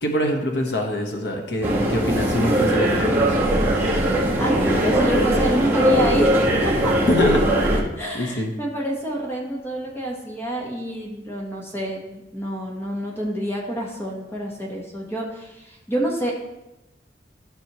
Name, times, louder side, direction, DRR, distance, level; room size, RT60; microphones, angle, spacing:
voice 1, 0.0-3.4 7.1-7.8 8.1-8.5, left 1 dB, 70° left, 2 dB, 1.1 m, -24 dB
sound 1, 1.6-7.8, right 1 dB, 15° right, 1.5 m, -20 dB
voice 2, 4.4-6.9 8.0-16.3, right 1 dB, 15° left, -2 dB, 1.2 m, -27 dB
13.0 x 6.1 x 3.0 m, 0.97 s
head